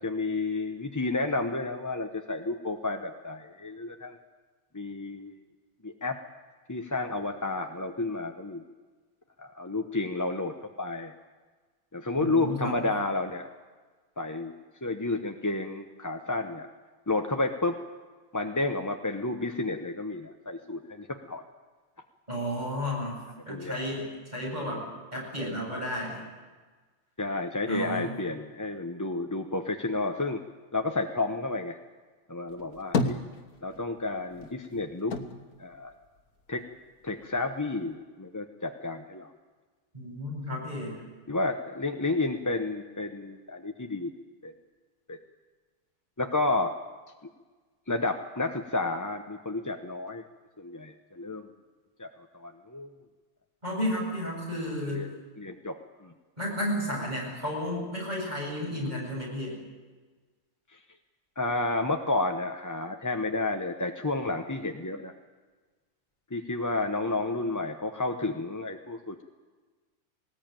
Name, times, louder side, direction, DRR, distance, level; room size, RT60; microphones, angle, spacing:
voice 1, 0.0-4.2 4.7-5.3 5.8-6.2 6.7-8.6 9.4-11.1 11.9-13.5 14.2-14.5 14.8-16.7 17.1-17.8 18.3-21.4 23.5-23.8 27.2-30.4 30.7-31.8 32.3-33.2 33.6-35.2 35.6-35.9 36.5-36.6 37.0-39.3 41.3-44.1 44.4-44.5 45.1-45.2 46.2-46.7 47.9-50.2 50.6-51.5 52.0-52.9 54.9-55.1 55.4-55.7 56.0-56.1 60.7-60.8 61.4-65.1 66.3-69.2, left 2 dB, 15° left, 4 dB, 0.7 m, -31 dB
voice 2, 12.1-12.7 22.3-24.8 25.1-26.2 27.7-28.1 39.9-41.0 53.6-55.1 56.4-59.6, equal, 30° right, -3 dB, 8.1 m, -32 dB
sound 1, 32.5-34.0 34.3-36.7 37.0-37.9, left 3 dB, 85° left, 1.8 m, -33 dB
20.0 x 19.0 x 9.0 m, 1.4 s
omnidirectional pair, 1.5 m